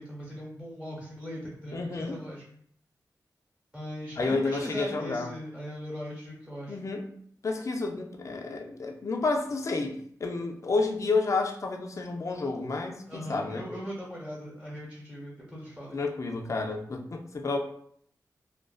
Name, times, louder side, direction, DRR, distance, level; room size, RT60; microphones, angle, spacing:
voice 1, 0.0-2.4 3.7-6.8 13.1-16.0, equal, 15° right, -5 dB, 0.9 m, -39 dB
voice 2, 1.7-2.2 4.2-5.3 6.7-7.1 7.4-13.7 15.9-17.6, left 3 dB, 50° left, 3 dB, 0.4 m, -30 dB
2.4 x 2.2 x 2.3 m, 0.64 s
wide cardioid pair, 75°, 7 cm